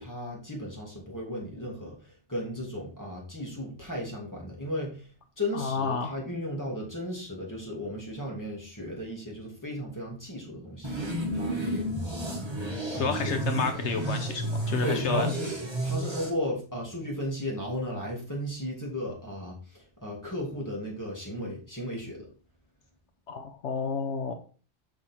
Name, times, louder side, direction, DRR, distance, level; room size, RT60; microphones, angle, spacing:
voice 1, 0.0-5.1 5.4-10.9 11.3-11.9 12.9-13.4 14.8-15.5 15.8-22.3, left 1 dB, 15° left, -2 dB, 2.3 m, -35 dB
voice 2, 5.5-6.2 13.0-15.3 23.3-24.3, left 5 dB, 75° left, 7 dB, 1.1 m, -30 dB
sound 1, 10.8-16.3, right 1 dB, 25° right, 1.7 m, -31 dB
6.3 x 6.0 x 4.3 m, 0.37 s
omnidirectional pair, 1.2 m